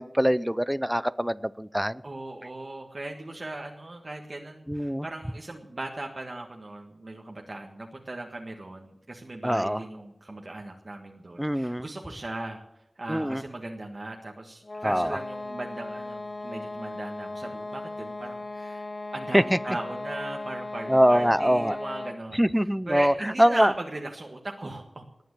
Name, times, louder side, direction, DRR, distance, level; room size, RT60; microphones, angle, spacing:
voice 1, 0.0-2.0 4.7-5.0 9.4-9.8 11.4-11.8 13.1-13.4 14.8-15.1 19.3-19.6 20.9-21.8 22.3-23.1 23.4-23.7, equal, 5° right, 16 dB, 0.5 m, -23 dB
voice 2, 2.0-12.6 13.0-18.8 19.1-25.0, right 2 dB, 50° right, 1 dB, 1.6 m, -38 dB
sound 1, 14.6-22.3, left 2 dB, 45° left, 0.9 m, -37 dB
19.0 x 9.2 x 6.7 m, 0.87 s
wide cardioid pair, 75°, 0 cm